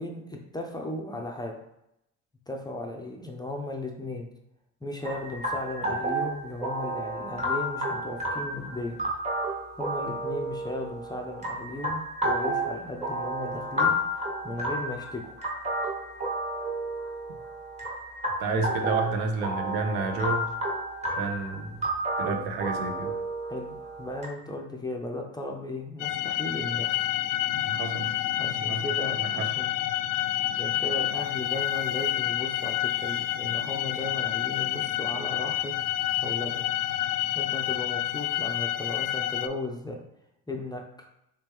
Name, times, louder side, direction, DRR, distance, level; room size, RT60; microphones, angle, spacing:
voice 1, 0.0-1.6 2.5-4.3 4.8-9.0 9.7-15.4 23.5-27.0 28.4-29.7 30.5-35.7 36.2-36.7 37.3-40.0 40.5-41.1, left 2 dB, 10° left, 1 dB, 0.5 m, -36 dB
sound 1, 5.0-24.3, right 1 dB, 15° right, 1.3 m, -31 dB
voice 2, 18.4-20.5 21.1-21.8 22.2-23.2 27.5-28.2 28.7-28.8 29.2-29.5, right 3 dB, 65° right, 5 dB, 0.7 m, -30 dB
sound 2, 26.0-39.5, left 13 dB, 70° left, 0.5 m, -29 dB
3.4 x 2.9 x 3.5 m, 0.82 s
hypercardioid pair, 60°, 40 cm